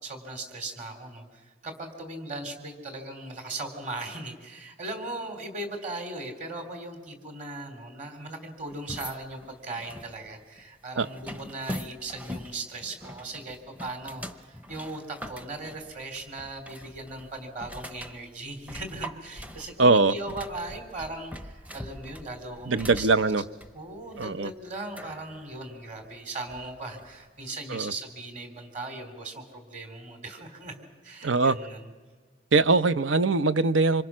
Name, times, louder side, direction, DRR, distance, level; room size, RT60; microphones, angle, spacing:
voice 1, 0.0-23.3 23.7-30.8 31.0-31.9, right 2 dB, 40° right, 5 dB, 3.5 m, -38 dB
sound 1, 8.7-27.2, equal, 10° right, 0.7 m, -43 dB
voice 2, 19.8-20.1 22.7-23.4 24.2-24.5 27.7-27.9 31.2-31.6 32.5-34.0, right 3 dB, 85° right, 12 dB, 0.8 m, -22 dB
26.5 x 26.0 x 6.3 m, 1.4 s
head